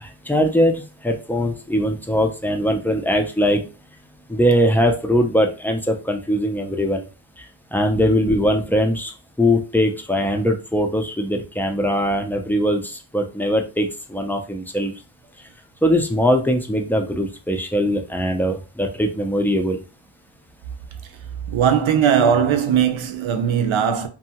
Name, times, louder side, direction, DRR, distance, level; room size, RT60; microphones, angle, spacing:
voice 1, 0.0-3.6 4.3-7.0 7.7-9.1 9.4-14.9 15.8-19.8, equal, 5° left, 0.3 m, -21 dB
voice 2, 21.5-24.1, right 8 dB, 70° right, 0.6 m, -19 dB
2.7 x 2.2 x 2.8 m
wide cardioid pair, 120°, 49 cm